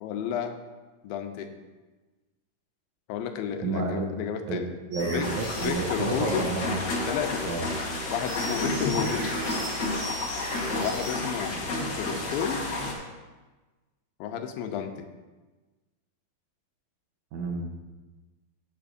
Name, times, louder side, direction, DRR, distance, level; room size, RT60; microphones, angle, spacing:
voice 1, 0.0-0.6 1.0-1.5 3.1-4.8 5.0-5.3 5.6-6.5 7.1-7.6 8.1-9.3 10.8-11.6 12.0-12.6 14.2-15.1, left 8 dB, 90° left, 6 dB, 2.5 m, -32 dB
voice 2, 3.6-4.1 4.5-4.6 4.9-6.8 7.5-7.7 8.9-9.1 11.5-11.7 17.3-17.7, right 3 dB, 70° right, 1 dB, 2.0 m, -30 dB
sound 1, 4.9-5.7 8.3-11.2, equal, 40° right, 3.6 m, -37 dB
sound 2, 5.2-12.9, left 2 dB, 65° left, 1.0 m, -31 dB
16.0 x 7.6 x 2.6 m, 1.2 s
omnidirectional pair, 4.0 m